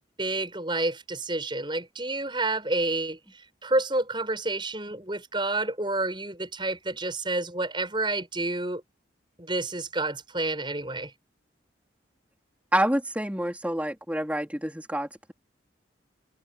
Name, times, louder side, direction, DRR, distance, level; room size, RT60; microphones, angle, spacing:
voice 1, 0.0-3.2 3.6-8.8 9.4-11.1, right 2 dB, 25° right, 7.4 m, -29 dB
voice 2, 12.7-15.3, right 1 dB, 5° right, 3.6 m, -28 dB
head